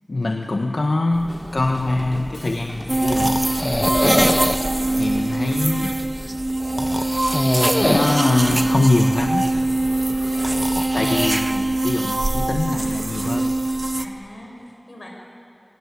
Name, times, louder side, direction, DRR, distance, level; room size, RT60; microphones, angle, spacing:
voice 1, 0.1-3.5 4.9-6.0 6.7-6.8 7.8-9.5 10.9-13.5, left 2 dB, 75° left, 3 dB, 1.2 m, -23 dB
sound 1, 1.2-11.3, left 1 dB, 20° left, 1.3 m, -26 dB
Drum kit, 1.3-5.5, equal, ahead, 3.0 m, -40 dB
sound 2, 2.9-14.1, right 2 dB, 45° right, 1.1 m, -22 dB
voice 2, 9.9-10.3 13.9-15.1, left 1 dB, 50° left, -1 dB, 6.6 m, -43 dB
27.5 x 18.0 x 8.5 m, 2.5 s
wide cardioid pair, 55°, 0 cm